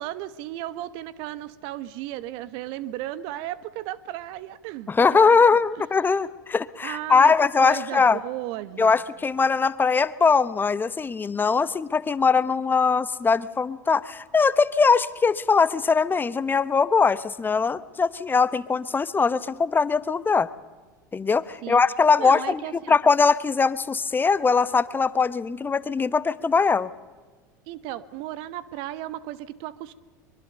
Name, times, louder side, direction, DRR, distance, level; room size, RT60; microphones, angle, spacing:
voice 1, 0.0-5.2 5.8-5.9 6.8-7.3 7.6-8.9 21.6-21.8 22.2-22.9 27.7-29.9, right 14 dB, 55° right, 17 dB, 1.1 m, -35 dB
voice 2, 4.9-8.2 8.8-20.5 21.1-22.6 22.9-26.9, left 5 dB, 20° left, 17 dB, 0.9 m, -21 dB
23.5 x 22.5 x 6.8 m, 1.3 s
hypercardioid pair, 80°, 10 cm